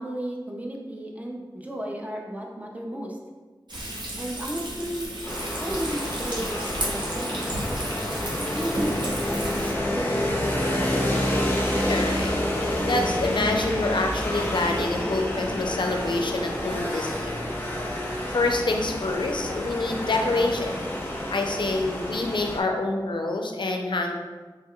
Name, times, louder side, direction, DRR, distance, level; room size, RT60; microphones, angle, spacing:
voice 1, 0.0-3.2 4.2-5.1 5.6-7.6 8.5-11.1, right 1 dB, 20° right, -1 dB, 0.6 m, -34 dB
Frying (food), 3.7-9.8, right 1 dB, 65° right, 0.7 m, -33 dB
sound 1, 5.2-22.6, left 1 dB, 25° left, 0.6 m, -28 dB
voice 2, 11.8-17.4 18.3-20.7 21.3-24.2, left 2 dB, 70° left, 3 dB, 0.4 m, -27 dB
3.2 x 2.1 x 3.6 m, 1.3 s
wide cardioid pair, 60°, 8 cm